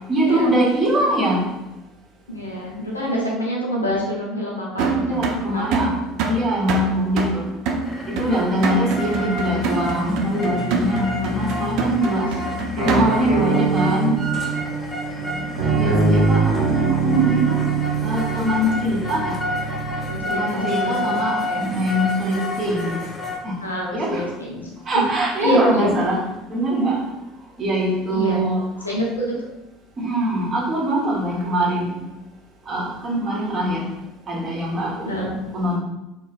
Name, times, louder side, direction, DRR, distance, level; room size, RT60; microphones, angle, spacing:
voice 1, 0.1-1.5 4.9-5.9 6.3-7.5 8.1-12.3 12.8-14.2 15.7-17.7 18.0-19.4 20.3-23.0 23.4-23.6 23.9-24.2 24.8-26.2 26.5-27.0 27.6-28.9 30.0-32.0 32.7-33.9 34.3-35.1 35.5-35.8, right 1 dB, 35° right, -4 dB, 1.0 m, -22 dB
voice 2, 2.3-6.0 12.5-12.7 15.0-15.4 20.0-21.7 23.6-24.7 25.4-25.9 28.1-28.4 28.8-29.4 35.1-35.4, equal, 85° left, -4 dB, 0.6 m, -26 dB
sound 1, 4.8-13.4, right 3 dB, 55° right, 0.4 m, -25 dB
sound 2, 7.8-23.4, left 1 dB, 25° left, 0.6 m, -30 dB
sound 3, 12.8-20.2, right 4 dB, 80° right, 0.8 m, -23 dB
2.9 x 2.8 x 2.4 m, 0.99 s
figure-of-eight pair, 65°, 0 cm